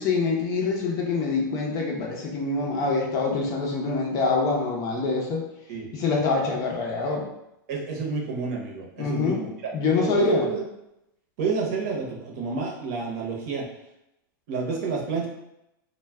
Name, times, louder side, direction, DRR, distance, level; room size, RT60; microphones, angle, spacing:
voice 1, 0.0-5.4 5.9-7.3 9.0-9.4 9.7-10.5, left 4 dB, 30° left, -2 dB, 0.6 m, -25 dB
voice 2, 7.7-10.6 11.4-13.7 14.5-15.3, right 4 dB, 50° right, -1 dB, 0.8 m, -30 dB
2.2 x 2.1 x 3.4 m, 0.83 s
supercardioid pair, 150°, 11 cm